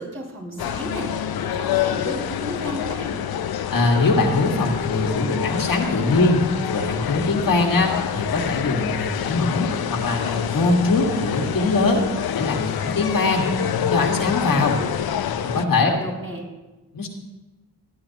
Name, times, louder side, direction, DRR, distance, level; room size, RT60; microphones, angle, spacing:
voice 1, 0.0-3.2 15.4-16.4, right 1 dB, 35° right, -3 dB, 5.1 m, -34 dB
sound 1, 0.6-15.7, left 9 dB, 85° left, 0.6 m, -27 dB
voice 2, 3.7-6.4 6.7-12.0 12.3-14.8 15.2-15.9 16.9-17.1, left 3 dB, 70° left, 1 dB, 1.8 m, -22 dB
17.0 x 11.0 x 2.9 m, 1.1 s
cardioid pair, 65°, 36 cm